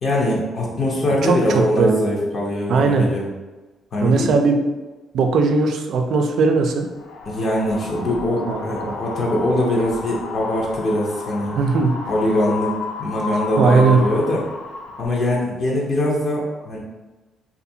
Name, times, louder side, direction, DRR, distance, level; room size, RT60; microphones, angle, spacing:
voice 1, 0.0-3.2 3.9-4.3 7.3-11.6 12.1-12.7 13.0-14.4 15.0-16.8, left 1 dB, 50° left, -3 dB, 0.7 m, -22 dB
voice 2, 1.2-2.0 2.7-3.1 4.0-4.6 5.1-6.9 8.5-9.0 11.6-11.9 13.6-14.0, right 4 dB, 70° right, 4 dB, 0.4 m, -18 dB
Wind, 6.9-15.1, left 3 dB, 85° left, 0.4 m, -32 dB
2.6 x 2.4 x 2.7 m, 1.2 s
cardioid pair, 90°, 0 cm